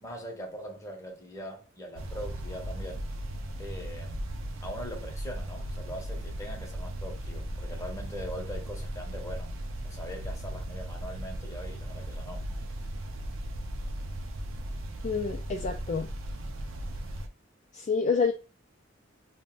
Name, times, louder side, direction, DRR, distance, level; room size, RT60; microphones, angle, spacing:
voice 1, 0.0-3.0 3.6-4.3 4.6-9.5 9.8-12.4, equal, 15° left, 0.7 m, -41 dB
sound 1, 2.0-17.3, right 1 dB, 80° right, 0.5 m, -37 dB
voice 2, 15.0-16.1 17.7-18.3, left 5 dB, 40° left, 0.3 m, -28 dB
2.4 x 2.1 x 3.6 m
head